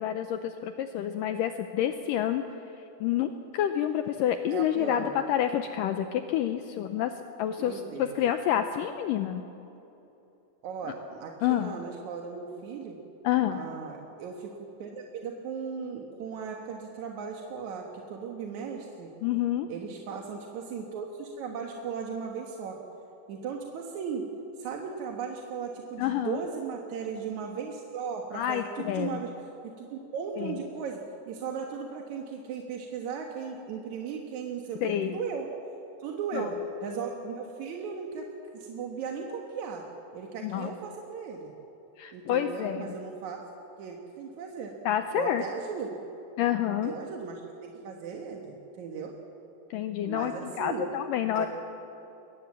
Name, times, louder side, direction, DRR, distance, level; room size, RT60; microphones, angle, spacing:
voice 1, 0.0-2.4 3.0-7.1 7.4-9.4 11.4-11.8 13.2-13.6 19.2-19.7 26.0-26.4 28.3-29.2 30.4-30.5 34.8-35.1 36.3-36.5 40.4-40.7 42.0-42.9 44.9-45.4 46.4-46.9 49.7-51.5, left 11 dB, 85° left, 8 dB, 1.9 m, -28 dB
voice 2, 4.5-5.2 7.6-8.2 10.6-13.0 13.5-19.1 19.7-22.8 23.3-24.3 24.6-29.3 29.6-31.0 31.3-35.5 36.0-36.5 36.8-38.3 38.5-39.8 40.1-41.5 42.1-43.4 43.8-44.7 45.1-45.9 46.8-49.2 50.0-50.9 51.3-51.5, right 6 dB, 60° right, 1 dB, 2.2 m, -37 dB
22.5 x 19.5 x 7.3 m, 3.0 s
omnidirectional pair, 4.7 m